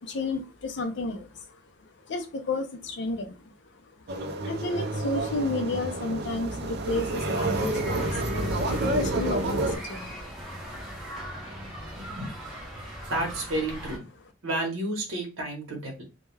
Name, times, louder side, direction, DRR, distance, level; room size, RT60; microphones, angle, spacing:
voice 1, 0.0-1.6 2.1-3.4 4.4-10.9 12.7-12.8, left 2 dB, 55° left, 6 dB, 0.5 m, -32 dB
sound 1, 4.1-9.8, right 2 dB, 50° right, 0.4 m, -29 dB
sound 2, 6.8-14.0, right 1 dB, 5° right, 0.8 m, -40 dB
voice 2, 12.0-12.3 13.1-14.1 14.4-16.0, right 1 dB, 75° right, 0 dB, 0.9 m, -31 dB
2.2 x 2.2 x 3.2 m, 0.29 s
head